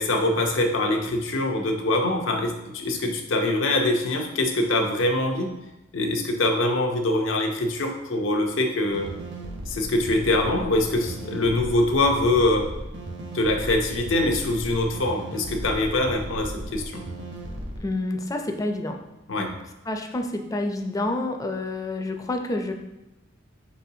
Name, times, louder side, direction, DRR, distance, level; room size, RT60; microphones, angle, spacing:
voice 1, 0.0-5.5 5.9-9.1 9.7-12.7 13.3-17.0 19.3-19.6, left 2 dB, 90° left, 2 dB, 0.7 m, -24 dB
sound 1, 8.9-17.8, right 1 dB, 60° right, 0.8 m, -36 dB
voice 2, 17.8-19.0 19.9-22.7, left 2 dB, 20° left, 4 dB, 0.4 m, -28 dB
4.7 x 4.2 x 2.7 m, 0.97 s
head